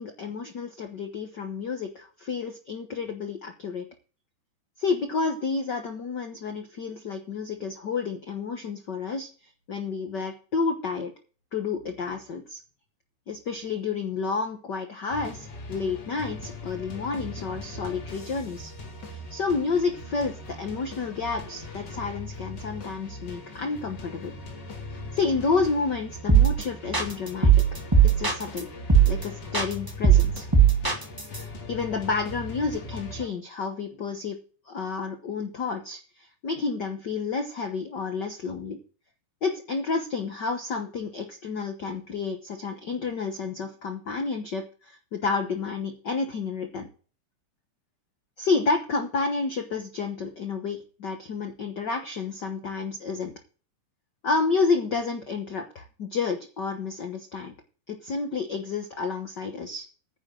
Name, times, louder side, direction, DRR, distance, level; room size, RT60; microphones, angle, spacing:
voice 1, 0.0-3.9 4.8-9.3 9.7-11.1 11.5-12.6 13.3-18.7 19.1-24.3 25.1-27.7 28.0-28.7 29.1-30.5 31.3-34.4 34.7-38.8 39.4-46.9 48.4-53.3 54.2-57.5 57.9-59.9, left 4 dB, 75° left, 6 dB, 0.9 m, -30 dB
sound 1, 15.1-33.3, left 2 dB, 35° left, 2.4 m, -40 dB
sound 2, 26.3-26.6 26.9-28.6 28.9-29.2 29.5-31.4, right 7 dB, 25° right, 0.4 m, -18 dB
10.0 x 6.4 x 7.6 m, 0.38 s
omnidirectional pair, 3.8 m